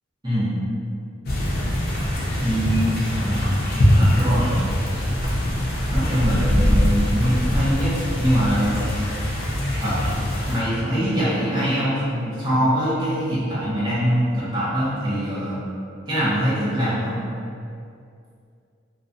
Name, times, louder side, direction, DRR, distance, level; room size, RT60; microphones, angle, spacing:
sound 1, 1.3-10.6, equal, 50° left, 0.5 m, -22 dB
voice 1, 2.4-3.6 3.9-4.6 5.9-8.8 9.8-9.9 10.5-15.6 16.1-17.2, equal, 20° right, -11 dB, 0.8 m, -23 dB
2.3 x 2.3 x 2.5 m, 2.4 s
head